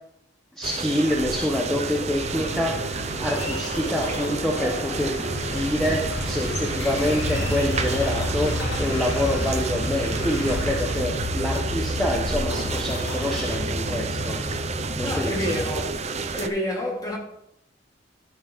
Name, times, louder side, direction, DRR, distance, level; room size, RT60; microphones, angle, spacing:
voice 1, 0.6-2.8 3.2-14.4 14.9-15.3, left 1 dB, ahead, 0.9 m, -26 dB
sound 1, 0.6-16.5, right 4 dB, 35° right, 0.6 m, -31 dB
sound 2, 1.0-15.8, left 1 dB, 65° left, 2.2 m, -32 dB
sound 3, 2.0-13.6, left 1 dB, 85° left, 2.0 m, -34 dB
voice 2, 15.0-15.9 16.3-17.2, equal, 20° left, 1.9 m, -28 dB
12.5 x 6.0 x 3.6 m
head